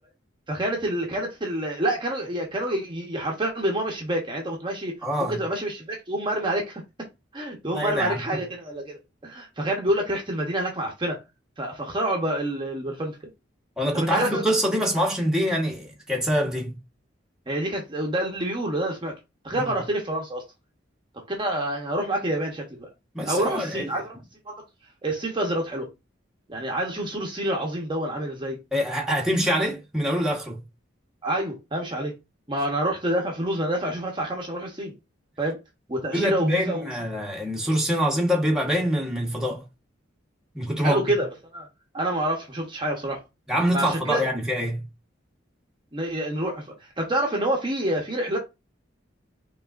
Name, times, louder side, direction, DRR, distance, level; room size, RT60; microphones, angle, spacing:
voice 1, 0.5-4.9 5.2-6.8 7.3-11.2 11.6-13.2 13.9-14.4 17.5-19.1 19.4-20.4 21.3-22.9 23.2-24.2 24.5-24.6 25.0-25.9 26.5-28.6 31.2-32.1 32.5-34.9 35.4-35.6 35.9-36.9 40.8-41.7 41.9-43.2 43.7-44.2 45.9-48.4, right 1 dB, 25° right, 1.0 m, -27 dB
voice 2, 5.0-5.4 7.7-8.2 13.8-16.7 19.6-19.7 23.1-23.9 28.7-30.6 36.1-39.6 40.5-41.1 43.5-44.8, equal, 5° right, 1.1 m, -25 dB
5.4 x 3.1 x 2.5 m
head